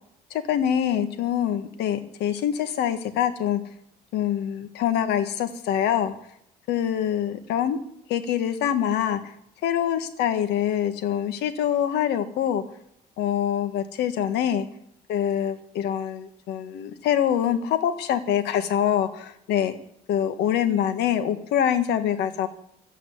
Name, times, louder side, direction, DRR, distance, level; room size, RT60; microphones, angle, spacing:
voice 1, 0.3-3.6 4.1-6.1 6.7-7.8 8.1-9.2 9.6-12.6 13.2-14.7 15.1-19.8 20.1-22.5, left 10 dB, 80° left, 9 dB, 1.5 m, -25 dB
12.5 x 8.9 x 9.7 m, 0.74 s
cardioid pair, 110°, 17 cm